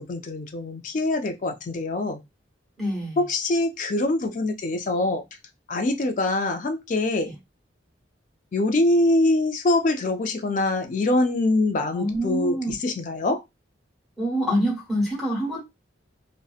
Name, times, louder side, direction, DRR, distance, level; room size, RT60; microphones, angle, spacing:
voice 1, 0.0-2.2 3.2-5.2 5.7-7.3 8.5-13.4, left 2 dB, 40° left, 0.4 m, -24 dB
voice 2, 2.8-3.2 7.2-7.4 11.9-12.7 14.2-15.6, equal, ahead, 1.2 m, -26 dB
2.6 x 2.1 x 2.3 m
head